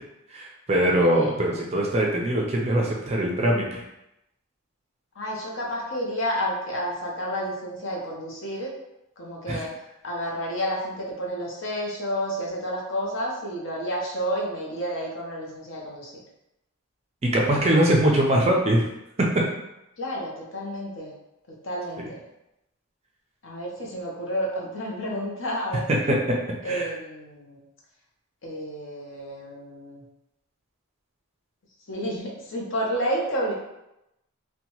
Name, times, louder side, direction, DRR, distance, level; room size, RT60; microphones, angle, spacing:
voice 1, 0.3-3.8 9.5-9.6 17.2-18.8 26.1-26.2 26.6-26.9, right 1 dB, 30° right, -1 dB, 0.4 m, -22 dB
voice 2, 5.2-8.7 9.2-9.7 10.0-16.1 20.0-21.1 21.6-22.2 23.4-25.8 26.6-27.6 28.4-30.0 31.9-33.5, equal, 55° left, -3 dB, 0.6 m, -30 dB
2.8 x 2.2 x 2.8 m, 0.88 s
head